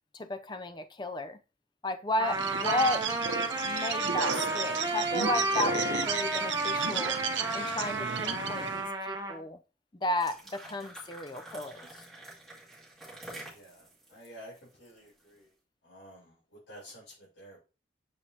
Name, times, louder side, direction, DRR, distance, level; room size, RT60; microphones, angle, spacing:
voice 1, 0.1-1.4 1.8-3.2 3.6-7.2 7.5-9.6 10.0-11.8, left 2 dB, 25° left, 0.5 m, -33 dB
Trumpet, 2.2-9.4, right 2 dB, 20° right, 0.8 m, -32 dB
Bird, 2.3-8.9, right 6 dB, 90° right, 0.7 m, -34 dB
sound 1, 10.0-15.3, right 1 dB, ahead, 2.2 m, -48 dB
voice 2, 13.5-15.5 15.8-17.6, equal, 85° left, 3.9 m, -51 dB
6.9 x 5.0 x 2.8 m
head